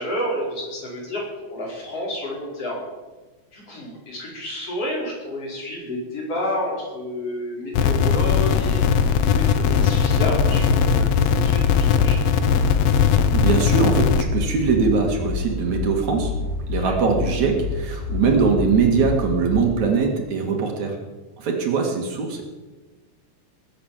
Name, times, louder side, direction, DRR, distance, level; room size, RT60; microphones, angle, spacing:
voice 1, 0.0-2.8 3.5-8.8 9.1-12.4 16.8-16.9, left 1 dB, 50° left, -3 dB, 6.1 m, -30 dB
sound 1, 7.7-14.2, left 7 dB, 65° left, 1.8 m, -19 dB
sound 2, 12.4-19.7, left 4 dB, 15° left, 2.2 m, -29 dB
voice 2, 13.3-16.3 16.7-21.0 21.4-22.4, right 5 dB, 70° right, 3 dB, 3.5 m, -21 dB
20.5 x 8.6 x 7.5 m, 1.2 s
omnidirectional pair, 3.5 m